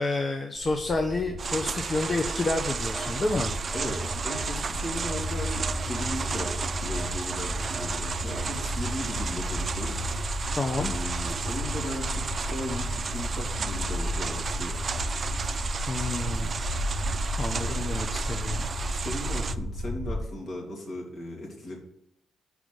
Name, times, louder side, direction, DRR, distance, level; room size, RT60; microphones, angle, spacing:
voice 1, 0.0-3.5 10.5-10.9 15.9-16.6 17.4-18.7, left 2 dB, 35° left, 3 dB, 0.8 m, -29 dB
sound 1, 0.5-20.2, equal, 85° left, 3.0 m, -33 dB
sound 2, 1.4-19.6, right 5 dB, 45° right, 0.4 m, -34 dB
Telephone, 2.9-4.7 5.1-9.1, equal, 20° right, 0.7 m, -38 dB
voice 2, 3.7-10.1 10.8-14.8 18.9-21.8, left 1 dB, 60° left, -1 dB, 2.7 m, -37 dB
5.2 x 4.9 x 6.3 m, 0.79 s
supercardioid pair, 65°, 0 cm